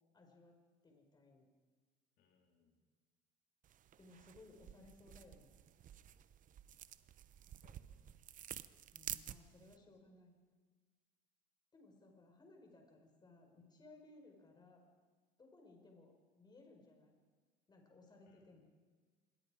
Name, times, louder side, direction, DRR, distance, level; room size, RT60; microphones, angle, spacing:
voice 1, 0.1-0.6 0.8-1.5 4.0-5.5 8.9-10.4 11.7-14.8 15.4-17.2 17.7-18.6, left 2 dB, 20° left, 2 dB, 5.0 m, -62 dB
voice 2, 2.2-2.8 7.6-8.1 9.6-10.2 18.2-18.6, left 5 dB, 60° left, 0 dB, 3.2 m, -75 dB
sound 1, 3.6-9.8, right 10 dB, 45° right, 0.8 m, -51 dB
26.0 x 21.5 x 5.0 m, 1.5 s
cardioid pair, 125°, 19 cm